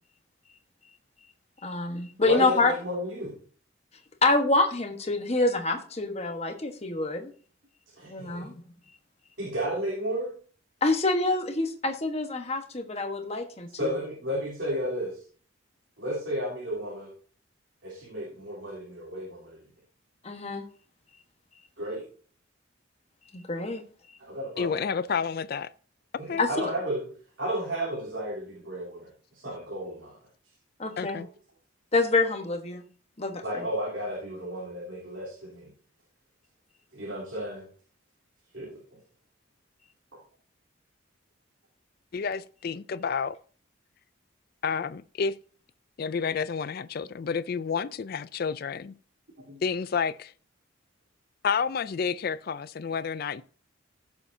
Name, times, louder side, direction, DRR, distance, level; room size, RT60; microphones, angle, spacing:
voice 1, 1.6-2.7 4.2-7.3 8.1-8.5 10.8-13.9 20.2-20.6 23.3-23.8 26.4-26.5 30.8-31.2 31.9-32.8 33.2-33.7, left 3 dB, 30° left, 1.2 m, -26 dB
voice 2, 2.2-3.3 8.0-8.5 9.4-10.3 13.7-15.2 16.0-17.1 17.8-19.6 21.8-22.0 24.2-24.8 26.2-27.1 27.4-29.1 29.3-30.2 33.4-35.7 36.9-37.7 38.5-39.0 49.5-49.6, equal, 65° right, 3.4 m, -33 dB
voice 3, 24.6-25.7 26.3-26.4 31.0-31.3 42.1-43.4 44.6-45.4 46.0-48.9 49.6-50.3 51.4-53.4, left 6 dB, 45° left, 0.4 m, -30 dB
16.0 x 7.0 x 2.7 m
head